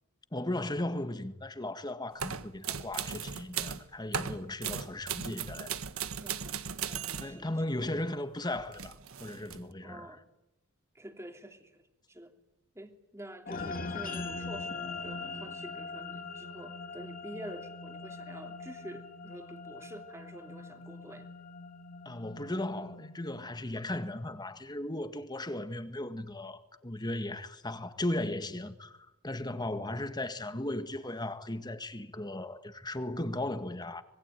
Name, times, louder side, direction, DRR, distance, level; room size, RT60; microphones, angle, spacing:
voice 1, 0.3-5.7 7.2-8.9 9.2-10.2 22.1-34.0, left 1 dB, 20° left, 1.8 m, -36 dB
sound 1, 2.2-3.8 4.1-7.3 8.5-9.6, right 7 dB, 70° right, 1.5 m, -37 dB
voice 2, 6.2-7.5 9.8-10.2 10.9-11.8 12.1-12.3 12.7-21.3 29.5-29.9, right 1 dB, 15° right, 3.1 m, -48 dB
sound 2, 13.5-24.1, left 3 dB, 40° left, 2.9 m, -42 dB
26.0 x 21.5 x 9.3 m
head